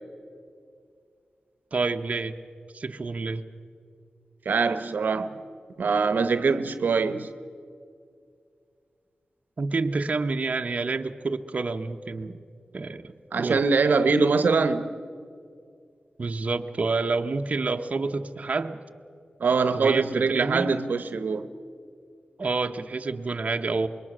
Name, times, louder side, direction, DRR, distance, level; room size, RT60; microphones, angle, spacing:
voice 1, 1.7-2.3 2.7-3.5 9.6-12.4 12.7-13.6 16.2-18.8 19.7-20.7 22.4-23.9, right 3 dB, 50° right, 0.9 m, -28 dB
voice 2, 4.4-5.4 5.8-7.3 13.3-14.9 19.4-21.5, right 4 dB, 80° right, 0.9 m, -23 dB
25.5 x 22.0 x 6.2 m
wide cardioid pair, 90°, 3 cm